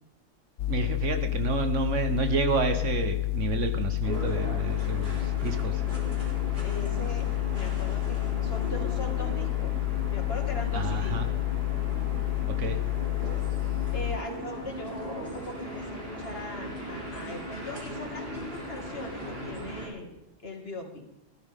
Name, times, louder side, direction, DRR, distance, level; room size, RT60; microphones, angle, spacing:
sound 1, 0.6-14.2, left 20 dB, 85° left, 1.0 m, -29 dB
voice 1, 0.7-5.8 10.7-11.3 12.5-12.8, right 4 dB, 75° right, 7 dB, 1.5 m, -30 dB
sound 2, 4.0-19.9, equal, 40° right, 4.5 m, -38 dB
voice 2, 6.6-9.7 10.1-11.2 13.9-20.1 20.4-21.0, left 1 dB, 50° left, 2 dB, 2.5 m, -40 dB
15.5 x 12.5 x 3.7 m, 0.95 s
omnidirectional pair, 1.3 m